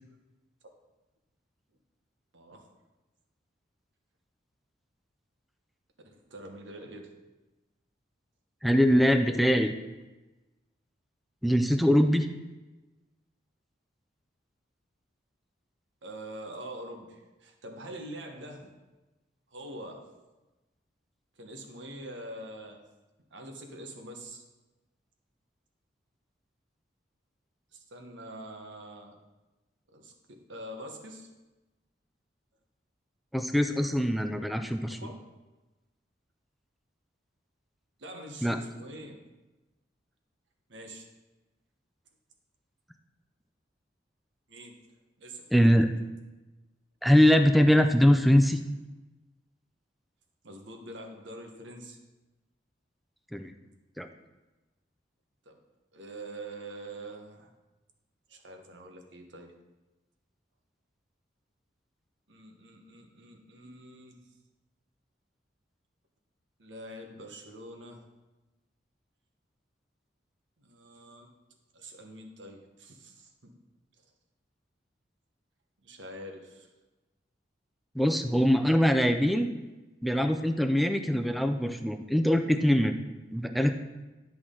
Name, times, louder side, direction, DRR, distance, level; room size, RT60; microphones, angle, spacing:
voice 1, 2.3-2.8 6.0-7.2 16.0-18.7 19.5-20.2 21.4-22.9 23.3-24.4 27.7-29.2 29.9-31.3 35.0-35.1 38.0-39.3 40.7-41.1 44.5-45.5 50.4-52.0 55.4-55.6 55.9-57.5 58.3-59.6 62.3-64.3 66.6-68.1 70.6-71.3 71.7-73.6 75.8-76.7, right 1 dB, 85° right, 2 dB, 1.2 m, -45 dB
voice 2, 8.6-9.7 11.4-12.3 33.3-35.0 38.4-38.6 45.5-45.9 47.0-48.6 53.3-53.5 54.0-54.1 78.0-79.5 80.0-83.0 83.3-83.7, equal, ahead, 7 dB, 0.4 m, -23 dB
10.5 x 6.0 x 3.8 m, 1.1 s
head